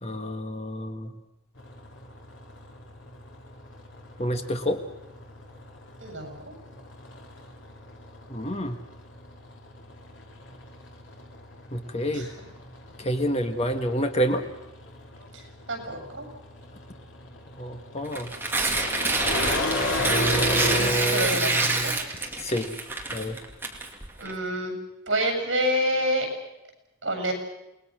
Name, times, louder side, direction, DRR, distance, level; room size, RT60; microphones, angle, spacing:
voice 1, 0.0-1.1 4.2-4.8 8.3-8.8 11.7-12.3 13.0-14.4 17.6-18.3 19.9-22.0 22.4-22.7 23.1-23.4, equal, 35° left, 7 dB, 1.7 m, -28 dB
sound 1, 1.6-20.9, left 2 dB, 75° left, 3.3 m, -36 dB
voice 2, 6.0-6.5 12.1-12.4 15.3-16.3 21.1-21.9 24.2-24.7 25.1-26.3 27.0-27.3, equal, 65° right, 4 dB, 7.5 m, -28 dB
Tearing, 18.0-24.3, right 3 dB, 10° right, 2.6 m, -27 dB
28.5 x 20.5 x 6.4 m, 0.90 s
head